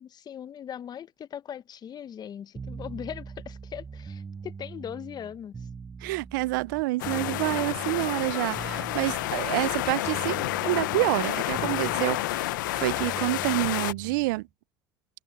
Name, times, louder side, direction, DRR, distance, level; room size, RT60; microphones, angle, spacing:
voice 1, 0.0-5.7, left 9 dB, 40° left, 1.0 m, -40 dB
sound 1, 2.5-14.4, right 5 dB, 30° right, 3.9 m, -42 dB
voice 2, 6.0-14.5, right 22 dB, 80° right, 0.4 m, -28 dB
sound 2, 7.0-13.9, left 18 dB, 85° left, 0.6 m, -30 dB
Piano, 8.3-13.3, left 3 dB, 20° left, 7.6 m, -50 dB
hypercardioid pair, 80°, 10 cm